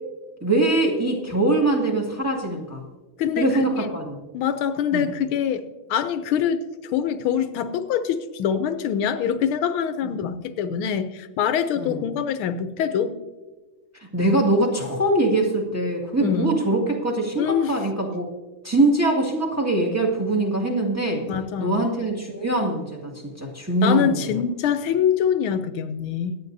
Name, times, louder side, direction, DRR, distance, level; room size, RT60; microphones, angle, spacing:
voice 1, 0.4-2.8 3.4-4.2 4.9-5.1 11.8-12.0 14.1-18.3 18.6-21.3 21.6-24.3, right 2 dB, 10° right, -1 dB, 1.7 m, -22 dB
voice 2, 3.2-3.9 4.3-5.6 5.9-6.6 6.9-13.2 16.2-16.5 17.4-17.8 21.3-21.8 23.8-26.4, left 8 dB, 80° left, 11 dB, 1.5 m, -24 dB
23.0 x 9.3 x 2.6 m, 1.2 s
omnidirectional pair, 2.3 m